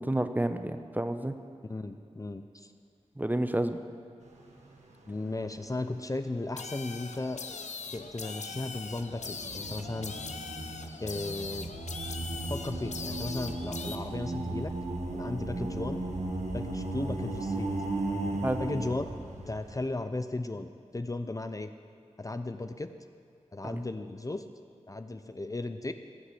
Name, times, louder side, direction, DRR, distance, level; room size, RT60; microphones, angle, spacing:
voice 1, 0.0-1.3 3.2-3.8 18.4-18.6 23.7-23.8, right 1 dB, 15° right, 9 dB, 0.7 m, -30 dB
voice 2, 1.7-2.7 5.1-7.4 7.9-10.2 11.0-11.7 12.5-14.7 15.1-16.0 16.5-17.8 18.6-19.1 19.5-21.7 22.2-22.9 23.5-24.4 24.9-25.9, left 2 dB, 30° left, 9 dB, 0.6 m, -35 dB
sound 1, 4.3-4.9 5.3-5.4 8.9-19.8, right 2 dB, 85° right, 1.6 m, -36 dB
sound 2, 6.6-14.0, left 4 dB, 80° left, 0.7 m, -41 dB
17.5 x 6.5 x 7.7 m, 2.4 s
wide cardioid pair, 60°, 12 cm